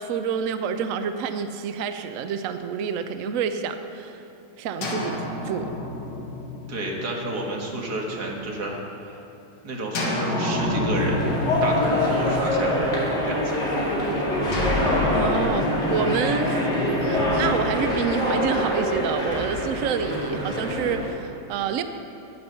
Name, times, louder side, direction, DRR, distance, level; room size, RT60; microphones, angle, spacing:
voice 1, 0.0-4.2 4.6-5.1 5.4-5.7 15.1-16.7 17.0-21.8, right 7 dB, 90° right, 8 dB, 0.7 m, -28 dB
sound 1, 4.8-8.6 9.9-13.5 14.5-18.7, left 2 dB, 90° left, 2.4 m, -30 dB
voice 2, 6.7-9.2 9.6-11.3 11.6-12.8 13.2-13.8, right 2 dB, 55° right, -1 dB, 2.0 m, -31 dB
sound 2, 10.9-21.1, left 1 dB, 35° left, 2.4 m, -25 dB
9.7 x 9.6 x 6.8 m, 2.7 s
omnidirectional pair, 2.2 m